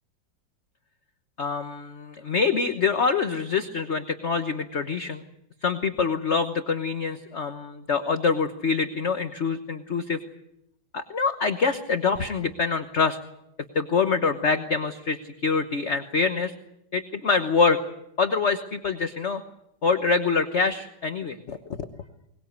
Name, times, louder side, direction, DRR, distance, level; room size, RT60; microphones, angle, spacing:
voice 1, 1.4-5.2 5.6-10.2 10.9-13.2 13.7-16.5 16.9-17.8 18.2-19.4 19.8-21.9, left 5 dB, 40° left, 8 dB, 1.3 m, -25 dB
22.5 x 21.5 x 8.1 m, 0.79 s
omnidirectional pair, 2.0 m